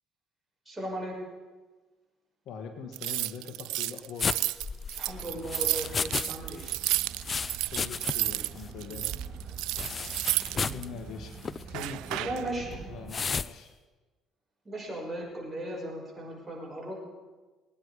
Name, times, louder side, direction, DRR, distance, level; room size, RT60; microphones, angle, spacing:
voice 1, 0.7-1.1 5.0-6.6 12.1-12.8 14.6-17.0, right 1 dB, 15° right, -3 dB, 5.9 m, -37 dB
voice 2, 2.4-4.3 7.7-9.1 10.5-12.6 12.9-13.7, left 5 dB, 65° left, 5 dB, 1.6 m, -42 dB
sound 1, 2.9-8.5 8.8-10.9 11.7-12.4, right 18 dB, 75° right, 0.3 m, -32 dB
sound 2, 4.2-6.3 6.6-8.4 8.6-8.7 9.8-10.9 11.4-11.6 13.1-13.5, left 5 dB, 35° left, 0.4 m, -33 dB
Water / Drip, 5.2-13.1, right 5 dB, 30° right, 4.9 m, -45 dB
20.0 x 9.9 x 4.8 m, 1.3 s
supercardioid pair, 75°, 0 cm